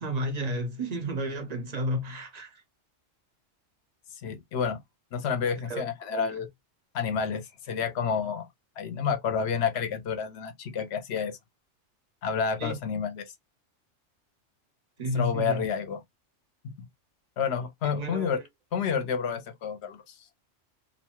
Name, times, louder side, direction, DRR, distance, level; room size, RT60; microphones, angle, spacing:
voice 1, 0.0-2.6 5.7-5.9 6.1-6.4 12.6-12.8 15.0-15.7 17.8-18.4, equal, 45° right, 0.6 m, -32 dB
voice 2, 4.1-4.8 5.1-6.5 6.9-8.4 8.8-11.3 12.2-13.2 15.1-16.0 16.6-16.7 17.4-18.4 18.7-20.1, left 6 dB, 65° left, 0.9 m, -29 dB
2.6 x 2.3 x 2.9 m
omnidirectional pair, 1.3 m